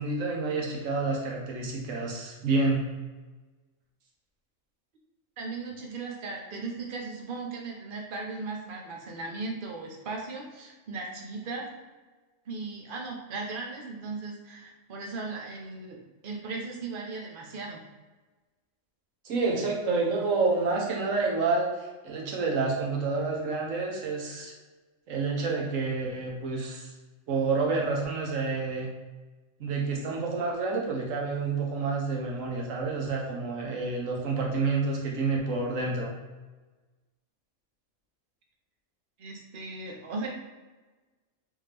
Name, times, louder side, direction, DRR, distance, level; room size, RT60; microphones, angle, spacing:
voice 1, 0.0-2.9 19.2-21.7 22.0-24.5 25.1-26.9 27.3-28.9 29.6-36.1, right 3 dB, 70° right, -1 dB, 1.1 m, -28 dB
voice 2, 5.4-11.7 12.5-17.8 39.2-40.3, right 3 dB, 50° right, 0 dB, 0.7 m, -37 dB
3.6 x 2.7 x 3.3 m, 1.2 s
omnidirectional pair, 1.5 m